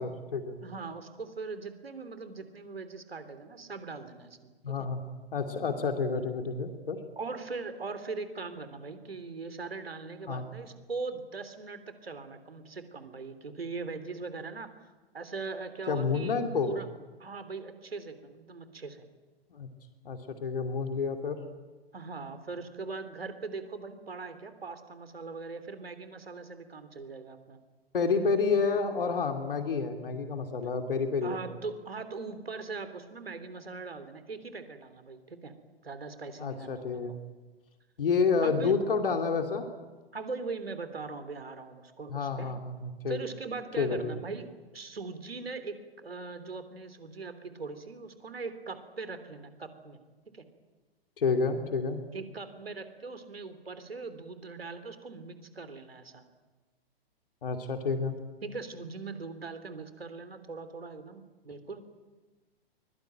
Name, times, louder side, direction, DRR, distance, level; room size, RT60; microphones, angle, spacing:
voice 1, 0.0-0.6 4.6-5.0 5.3-7.0 10.3-10.4 15.9-16.7 19.5-19.7 20.0-21.4 27.9-31.4 36.4-37.1 38.0-39.6 42.1-43.2 43.8-44.2 51.2-52.0 57.4-58.2, left 5 dB, 60° left, 5 dB, 2.6 m, -29 dB
voice 2, 0.6-4.9 7.2-14.7 15.1-16.9 17.2-19.1 21.9-27.6 31.2-35.5 35.8-37.2 38.4-38.7 40.1-42.5 43.1-50.0 50.3-50.5 52.1-56.2 58.4-61.8, right 4 dB, 75° right, 10 dB, 3.4 m, -40 dB
24.0 x 22.5 x 9.0 m, 1.3 s
figure-of-eight pair, 110°, 30 cm